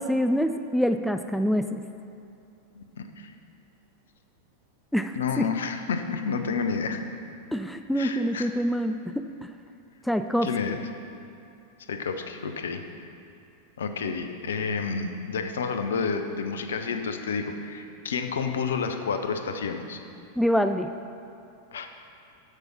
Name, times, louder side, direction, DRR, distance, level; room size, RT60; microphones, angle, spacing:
voice 1, 0.0-1.8 4.9-5.5 7.5-9.5 10.0-10.8 20.4-20.9, equal, ahead, 8 dB, 0.3 m, -26 dB
voice 2, 2.7-3.3 5.1-7.0 7.9-8.5 10.4-10.8 11.9-12.8 13.8-20.0 21.7-21.9, left 5 dB, 65° left, 7 dB, 0.7 m, -30 dB
8.2 x 6.9 x 6.0 m, 2.6 s
figure-of-eight pair, 90°, 0 cm